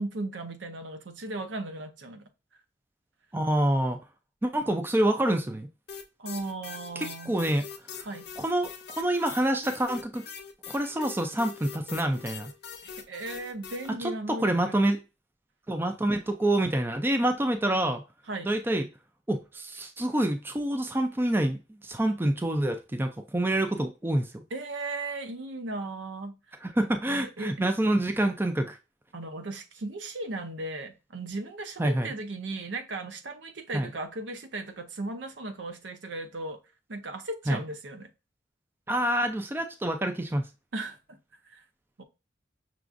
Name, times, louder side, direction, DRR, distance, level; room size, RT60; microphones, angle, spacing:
voice 1, 0.0-2.3 6.2-7.5 8.1-8.3 12.8-14.8 17.7-18.0 18.3-18.6 24.5-26.4 26.8-27.5 29.1-36.6 36.9-38.1 40.7-41.2 41.4-41.6 42.0-42.1, right 2 dB, 75° right, 0.6 m, -37 dB
voice 2, 3.3-4.0 4.4-5.7 7.0-7.6 7.9-8.1 8.4-8.7 9.0-10.2 10.7-12.5 14.0-15.0 15.7-18.0 18.4-18.9 19.3-24.4 26.6-28.8 31.8-32.1 33.7-33.9 37.5-37.6 38.9-40.5, right 1 dB, 10° right, 0.4 m, -27 dB
sound 1, 5.9-13.9, left 6 dB, 60° left, 0.6 m, -43 dB
5.9 x 2.4 x 2.5 m
head